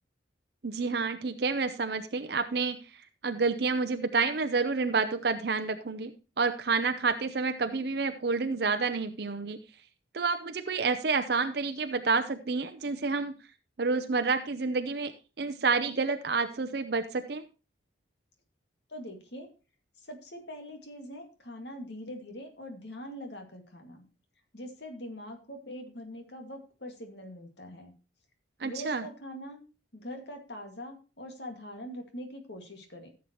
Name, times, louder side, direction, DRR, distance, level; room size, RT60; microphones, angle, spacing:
voice 1, 0.6-6.1 6.4-9.6 10.1-13.3 13.8-15.1 15.4-17.4 28.6-29.0, right 4 dB, 55° right, 8 dB, 0.6 m, -29 dB
voice 2, 18.9-19.5 20.0-24.1 24.5-27.9 28.6-29.6 29.9-33.1, equal, 65° left, 4 dB, 2.2 m, -43 dB
15.0 x 7.3 x 3.0 m, 0.32 s
head